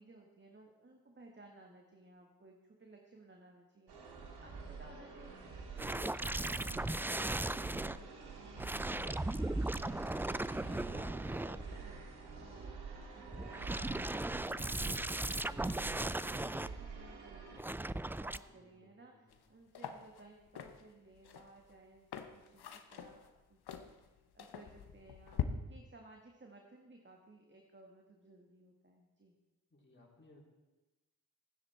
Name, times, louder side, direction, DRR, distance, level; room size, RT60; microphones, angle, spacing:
voice 1, 0.0-12.8 13.1-14.9 15.5-29.3, right 2 dB, 30° right, 1 dB, 1.7 m, -59 dB
sound 1, 3.9-17.6, right 4 dB, 80° right, 1.9 m, -48 dB
sound 2, 5.8-8.0 8.6-12.0 13.3-16.7 17.6-18.4, right 2 dB, 5° right, 0.3 m, -37 dB
voice 2, 18.6-19.2 29.7-30.4, left 2 dB, 30° left, -2 dB, 3.7 m, -63 dB
sound 3, 19.3-19.4 19.7-25.5, left 10 dB, 75° left, 1.0 m, -44 dB
14.0 x 9.7 x 4.4 m, 1.1 s
supercardioid pair, 45°, 39 cm